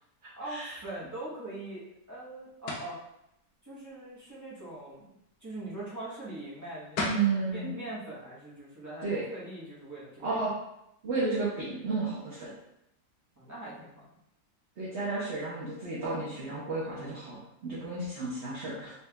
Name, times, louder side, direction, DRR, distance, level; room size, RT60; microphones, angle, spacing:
voice 1, 0.4-3.0 3.6-5.1 5.4-10.3 13.4-14.1, right 2 dB, 15° right, -8 dB, 1.0 m, -42 dB
sound 1, 2.7-3.0 6.6-6.7 7.0-7.3, left 2 dB, 80° left, 1.3 m, -32 dB
voice 2, 7.0-7.7 9.0-9.2 10.2-10.5 11.0-12.5 14.8-18.9, right 3 dB, 50° right, -8 dB, 1.1 m, -32 dB
4.3 x 2.5 x 3.4 m, 0.81 s
omnidirectional pair, 1.7 m